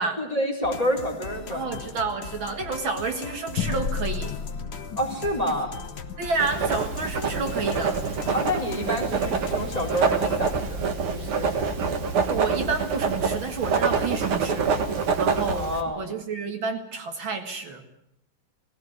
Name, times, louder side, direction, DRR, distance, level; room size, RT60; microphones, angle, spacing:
voice 1, 0.2-1.8 5.0-5.7 8.3-11.7 15.5-16.1, equal, 15° left, 2 dB, 4.0 m, -28 dB
sound 1, 0.6-10.6, left 5 dB, 40° left, 1.0 m, -40 dB
voice 2, 1.5-4.4 6.2-8.0 11.4-11.5 12.3-14.7 15.2-15.7 16.0-17.8, right 4 dB, 65° right, 5 dB, 2.5 m, -30 dB
sound 2, 3.6-8.4, left 5 dB, 65° left, 1.9 m, -34 dB
Writing, 6.4-15.8, right 5 dB, 85° right, 2.6 m, -26 dB
20.0 x 15.5 x 9.6 m, 0.79 s
omnidirectional pair, 2.3 m